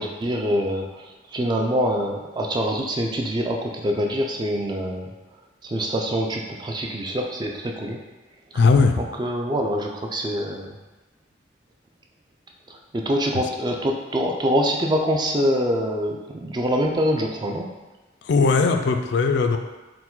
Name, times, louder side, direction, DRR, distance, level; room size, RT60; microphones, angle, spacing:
voice 1, 0.0-5.1 5.6-8.0 8.5-8.7 9.2-10.7 12.7-17.7, equal, 20° right, 1 dB, 0.3 m, -25 dB
voice 2, 8.5-9.0 18.2-19.6, left 4 dB, 60° left, 5 dB, 0.3 m, -18 dB
4.6 x 2.1 x 3.7 m, 1.1 s
head